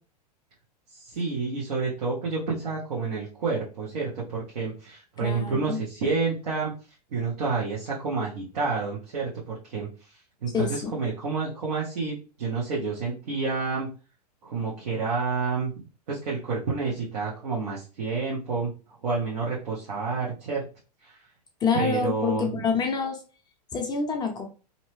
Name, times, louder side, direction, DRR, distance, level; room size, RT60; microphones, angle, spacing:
voice 1, 0.9-6.7 7.1-9.9 10.4-13.9 14.4-15.7 16.1-18.7 19.0-20.6 21.0-21.2 21.7-22.6, right 4 dB, 70° right, -5 dB, 1.0 m, -29 dB
voice 2, 5.2-5.8 10.5-10.9 21.6-23.2 23.7-24.5, left 5 dB, 20° left, 3 dB, 0.5 m, -27 dB
2.7 x 2.1 x 3.1 m, 0.35 s
hypercardioid pair, 105°, 21 cm